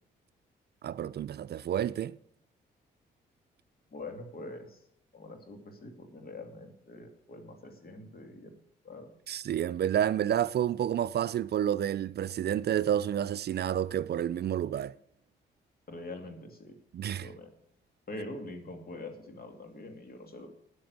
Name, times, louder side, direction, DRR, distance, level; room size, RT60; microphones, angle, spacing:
voice 1, 0.8-2.2 9.3-14.9 16.9-17.3, right 10 dB, 55° right, 0.4 m, -30 dB
voice 2, 3.9-4.8 5.1-8.5 8.8-9.1 15.9-16.8 17.1-17.5 18.1-20.5, left 2 dB, 50° left, 2.6 m, -44 dB
9.6 x 7.7 x 8.2 m
supercardioid pair, 55°, 20 cm